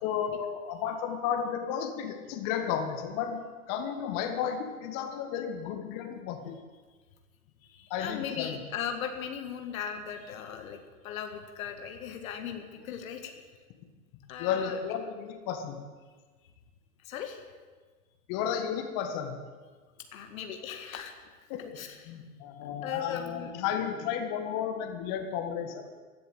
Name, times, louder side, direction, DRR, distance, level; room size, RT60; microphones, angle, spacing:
voice 1, 0.0-3.4 3.7-6.6 7.9-8.6 14.4-15.8 18.3-19.4 21.5-25.8, left 8 dB, 45° left, 5 dB, 1.9 m, -33 dB
voice 2, 7.7-13.3 14.3-14.8 17.0-17.4 20.1-21.2 21.8-22.1 22.8-23.5, left 8 dB, 65° left, 5 dB, 2.0 m, -38 dB
16.0 x 10.5 x 7.7 m, 1.4 s
hypercardioid pair, 100°, 45 cm